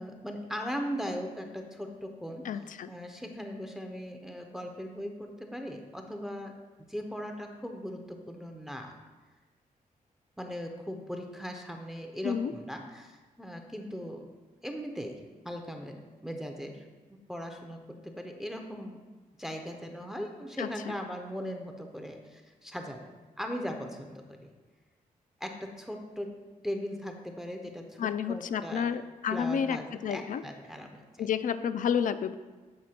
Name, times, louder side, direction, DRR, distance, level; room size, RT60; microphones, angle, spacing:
voice 1, 0.0-2.6 2.9-8.9 10.4-14.3 14.6-16.9 17.3-19.0 19.4-23.0 23.4-24.5 25.4-26.4 26.6-28.9 29.3-31.0, equal, 5° right, 3 dB, 0.5 m, -39 dB
voice 2, 2.4-2.9 12.2-12.5 20.6-20.9 28.0-29.8 30.0-30.4 31.2-32.3, left 7 dB, 65° left, 12 dB, 0.4 m, -30 dB
7.5 x 4.3 x 4.3 m, 1.3 s
wide cardioid pair, 135°, 15 cm